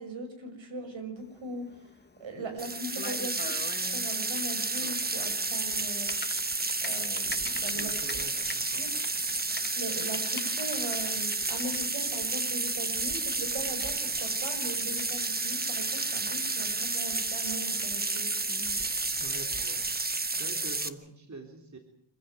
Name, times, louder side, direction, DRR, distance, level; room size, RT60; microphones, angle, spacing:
voice 1, 0.0-1.6 2.2-6.1 6.8-7.9 8.7-9.0 9.8-18.3, right 2 dB, 70° right, 6 dB, 6.5 m, -40 dB
Typing, 1.2-19.2, left 3 dB, 20° left, 1.2 m, -46 dB
sound 1, 2.6-20.9, right 3 dB, 20° right, 1.2 m, -31 dB
voice 2, 7.8-8.9 9.6-9.7 19.2-19.8 20.1-21.8, right 3 dB, 35° right, 3 dB, 3.8 m, -45 dB
26.5 x 16.0 x 9.3 m, 0.67 s
wide cardioid pair, 140°, 47 cm